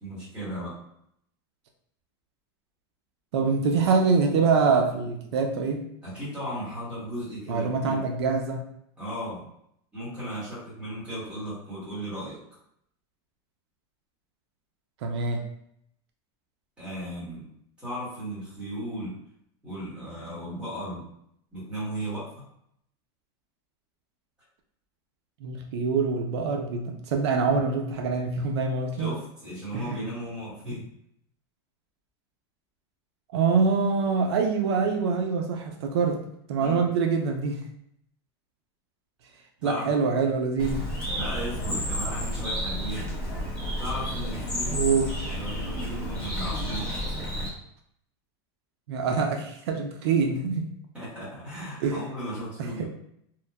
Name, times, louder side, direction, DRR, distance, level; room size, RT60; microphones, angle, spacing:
voice 1, 0.0-0.7 6.0-8.0 9.0-9.4 9.9-12.4 16.8-17.5 17.8-19.2 19.6-21.1 21.5-22.3 29.0-30.8 36.6-36.8 39.6-39.9 41.1-43.1 43.8-44.8 45.3-46.9 50.9-52.9, equal, 10° right, -10 dB, 1.0 m, -36 dB
voice 2, 3.3-5.8 7.5-8.6 15.0-15.4 25.4-29.1 29.7-30.0 30.7-30.8 33.3-36.2 36.5-37.6 39.6-40.9 44.7-45.1 48.9-50.6 51.8-52.1 52.6-52.9, right 5 dB, 80° right, 3 dB, 0.4 m, -25 dB
Bird, 40.6-47.5, equal, 5° left, 0.5 m, -31 dB
2.9 x 2.1 x 2.2 m, 0.73 s
supercardioid pair, 180°, 14 cm